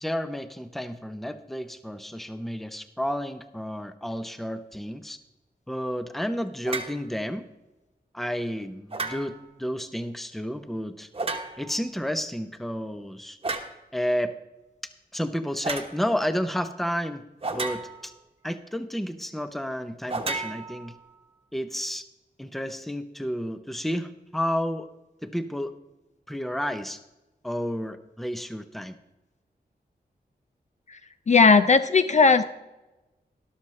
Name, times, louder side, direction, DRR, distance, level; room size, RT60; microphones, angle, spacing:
voice 1, 0.0-5.2 5.7-7.4 8.1-11.1 11.6-13.4 13.9-14.4 15.1-17.2 17.5-18.1 18.4-20.9 21.5-22.1 22.4-24.9 25.2-25.7 26.3-27.0 27.4-28.9, equal, ahead, 10 dB, 0.7 m, -31 dB
sound 1, 6.7-7.0 8.9-9.5 11.1-11.8 13.4-13.8 15.6-15.9 17.4-18.2 20.1-21.2, right 3 dB, 35° right, 1.1 m, -32 dB
voice 2, 31.3-32.4, left 4 dB, 45° left, 11 dB, 0.5 m, -17 dB
13.0 x 12.0 x 3.2 m, 1.0 s
wide cardioid pair, 130°, 16 cm